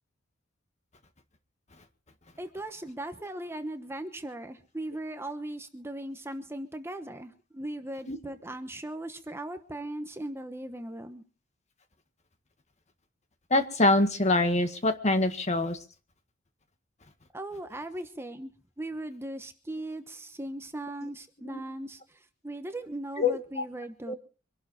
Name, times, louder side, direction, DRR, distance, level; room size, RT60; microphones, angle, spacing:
voice 1, 2.4-11.2 17.3-18.5 18.8-24.1, right 1 dB, 15° right, 8 dB, 1.0 m, -38 dB
voice 2, 13.5-15.8 21.4-21.6 23.2-23.6 24.1-24.2, left 2 dB, 35° left, 8 dB, 1.7 m, -25 dB
24.5 x 12.0 x 4.3 m, 0.38 s
head